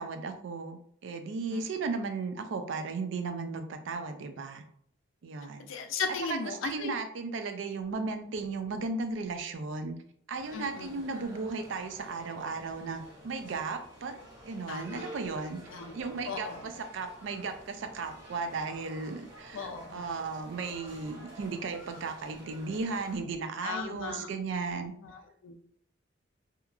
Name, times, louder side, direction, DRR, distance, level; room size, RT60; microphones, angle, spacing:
voice 1, 0.0-4.6 5.2-5.7 6.1-10.0 10.3-14.1 14.4-15.6 15.9-24.9, right 4 dB, 70° right, 7 dB, 0.4 m, -35 dB
voice 2, 5.7-6.9 10.5-10.9 14.7-15.2 15.7-15.9 16.3-16.7 19.5-20.0 23.6-24.3 25.0-25.6, left 5 dB, 80° left, 5 dB, 0.4 m, -37 dB
sound 1, 10.3-23.2, right 1 dB, 10° right, 1.1 m, -50 dB
2.8 x 2.3 x 2.3 m, 0.65 s
head